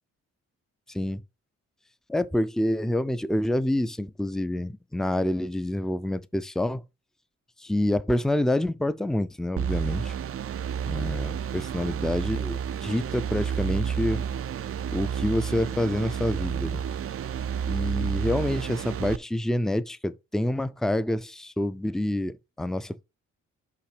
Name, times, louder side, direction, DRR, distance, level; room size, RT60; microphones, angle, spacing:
voice 1, 0.9-1.2 2.1-6.8 7.6-10.1 10.8-14.2 14.9-16.8 17.7-23.0, left 1 dB, ahead, 0.6 m, -27 dB
sound 1, 9.6-19.2, right 8 dB, 45° right, 0.5 m, -30 dB
5.9 x 5.7 x 5.0 m
supercardioid pair, 50°, 32 cm